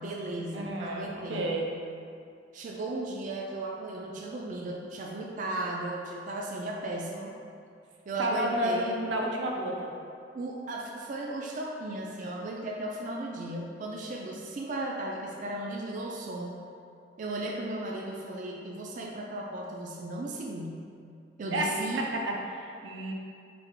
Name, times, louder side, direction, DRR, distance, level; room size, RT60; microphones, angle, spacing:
voice 1, 0.0-1.6 2.5-7.3 8.1-9.0 10.3-16.6 17.2-20.9 21.4-22.0, right 2 dB, 45° right, -1 dB, 0.3 m, -36 dB
voice 2, 0.5-1.7 8.2-9.9 21.5-23.1, right 1 dB, 90° right, -1 dB, 0.6 m, -31 dB
3.5 x 3.4 x 3.7 m, 2.4 s
head